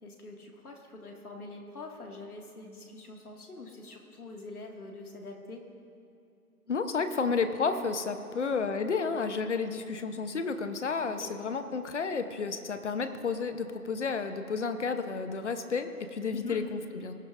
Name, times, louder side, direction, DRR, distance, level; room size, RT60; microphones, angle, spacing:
voice 1, 0.0-5.6 11.0-11.3 16.3-16.6, left 3 dB, 70° left, 1 dB, 2.0 m, -44 dB
voice 2, 6.7-17.1, left 5 dB, 50° left, 9 dB, 0.8 m, -31 dB
19.0 x 11.0 x 2.5 m, 2.6 s
figure-of-eight pair, 155°, 46 cm